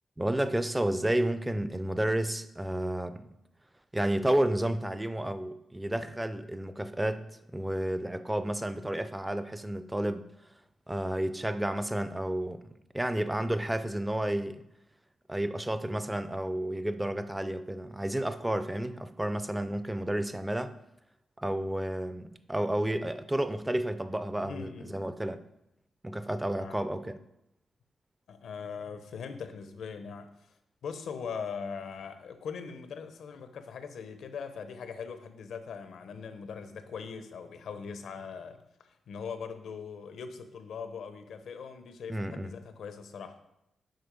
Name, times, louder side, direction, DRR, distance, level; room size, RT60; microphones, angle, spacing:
voice 1, 0.2-3.3 3.9-7.2 7.5-10.3 10.9-12.7 12.9-14.6 15.3-20.7 21.4-25.4 26.0-27.2 42.1-42.5, right 1 dB, 5° right, 11 dB, 0.3 m, -31 dB
voice 2, 24.4-25.1 26.6-26.8 28.3-30.6 30.8-43.3, left 6 dB, 75° left, 9 dB, 0.8 m, -41 dB
7.8 x 4.8 x 5.2 m, 0.85 s
wide cardioid pair, 180°, 0 cm